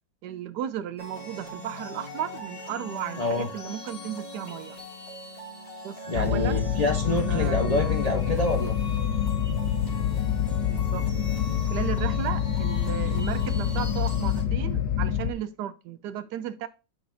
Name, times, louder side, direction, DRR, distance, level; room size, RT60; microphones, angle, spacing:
voice 1, 0.2-4.8 5.8-6.7 7.0-8.0 10.7-11.1 11.7-16.7, right 10 dB, 75° right, 1.1 m, -35 dB
sound 1, 1.0-14.4, left 1 dB, 20° left, 1.8 m, -40 dB
voice 2, 3.2-3.5 6.1-8.8, left 1 dB, 45° left, 0.4 m, -27 dB
sound 2, 6.1-15.3, left 9 dB, 85° left, 1.4 m, -26 dB
8.5 x 5.0 x 2.6 m
omnidirectional pair, 1.9 m